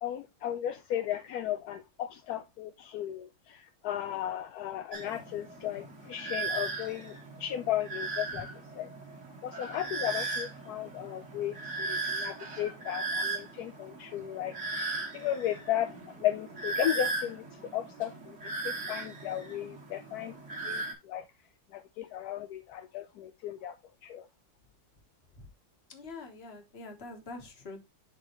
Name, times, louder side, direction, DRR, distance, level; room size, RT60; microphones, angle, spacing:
voice 1, 0.0-8.5 8.8-8.9 9.4-14.6 15.1-15.9 16.2-18.4 18.6-20.3 20.6-21.2 21.7-23.8 24.0-24.3, left 11 dB, 75° left, 0.9 m, -35 dB
sound 1, 4.9-20.9, right 3 dB, 40° right, 1.9 m, -37 dB
voice 2, 9.7-10.1 25.3-25.5 25.9-27.8, left 3 dB, 35° left, 1.4 m, -45 dB
10.5 x 3.8 x 3.0 m
omnidirectional pair, 2.1 m